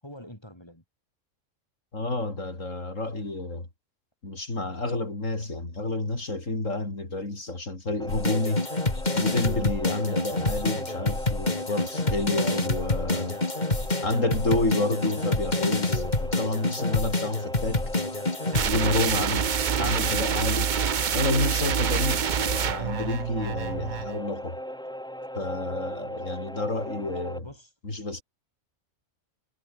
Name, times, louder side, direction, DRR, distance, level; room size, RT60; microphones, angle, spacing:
voice 1, 0.0-0.8 19.1-19.5 27.4-27.7, equal, 20° left, 7.6 m, -45 dB
voice 2, 1.9-3.7 4.2-8.7 9.1-13.4 14.0-17.9 18.6-19.5 19.8-20.7 21.1-24.6 25.3-27.5 27.8-28.2, left 2 dB, 85° left, 5.3 m, -29 dB
sound 1, 8.0-27.4, equal, 5° left, 3.7 m, -38 dB
sound 2, 8.1-18.8, left 2 dB, 35° left, 2.9 m, -27 dB
sound 3, 18.5-24.2, right 7 dB, 45° right, 0.8 m, -27 dB
omnidirectional pair, 1.3 m